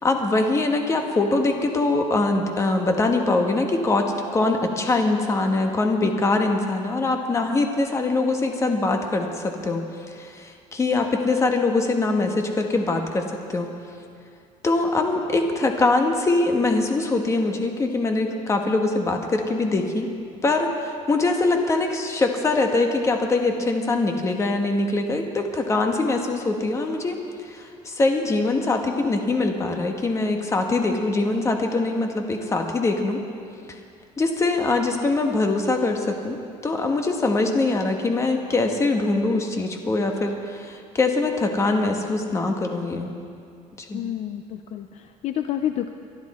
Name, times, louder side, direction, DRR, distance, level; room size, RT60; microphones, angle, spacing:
voice 1, 0.0-13.7 14.6-20.1 20.4-33.2 33.7-33.8 34.2-43.1 43.8-44.0, left 2 dB, 20° left, 4 dB, 1.3 m, -23 dB
voice 2, 4.4-4.8 43.9-45.9, left 11 dB, 50° left, 8 dB, 0.5 m, -30 dB
23.5 x 12.0 x 4.3 m, 2.4 s
cardioid pair, 155°, 14 cm